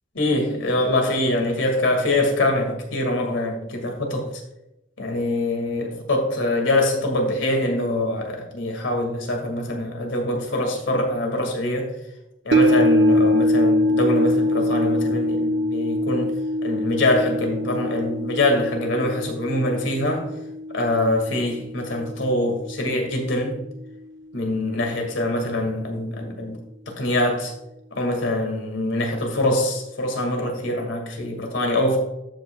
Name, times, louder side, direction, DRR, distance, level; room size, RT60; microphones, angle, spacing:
voice 1, 0.1-4.3 5.0-11.9 12.4-20.3 20.7-23.6 24.3-26.6 26.9-27.5 27.9-32.0, left 1 dB, 80° left, 2.1 m, -24 dB
sound 1, 12.5-22.9 23.3-23.4, left 1 dB, 65° right, 0.5 m, -23 dB
14.5 x 5.5 x 2.3 m
head